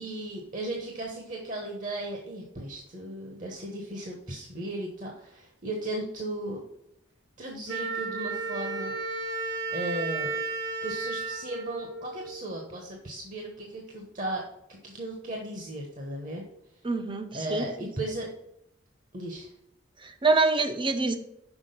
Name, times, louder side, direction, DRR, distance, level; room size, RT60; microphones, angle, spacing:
voice 1, 0.0-6.6 7.4-8.9 9.7-10.3 10.8-16.4 17.3-18.3 19.1-19.5, right 1 dB, 40° right, 0 dB, 1.1 m, -36 dB
Wind instrument woodwind instrument, 7.7-12.5, right 4 dB, 80° right, 2.2 m, -33 dB
voice 2, 16.8-17.9 20.0-21.2, right 3 dB, 25° right, 8 dB, 0.7 m, -26 dB
6.1 x 4.8 x 6.7 m, 0.78 s
head